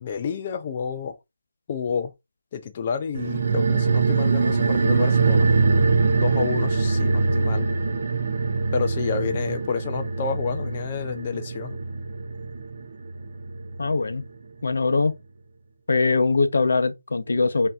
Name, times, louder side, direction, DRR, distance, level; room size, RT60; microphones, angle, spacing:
voice 1, 0.0-1.2 1.7-2.1 2.5-5.5 6.2-7.7 8.7-11.8, left 6 dB, 30° left, 0.3 m, -29 dB
sound 1, 3.2-14.0 14.3-14.4, right 4 dB, 50° right, 0.6 m, -23 dB
voice 2, 13.8-14.2 14.6-15.1 15.9-17.7, left 3 dB, 70° left, 0.7 m, -21 dB
5.4 x 2.7 x 2.4 m
figure-of-eight pair, 170°, 0 cm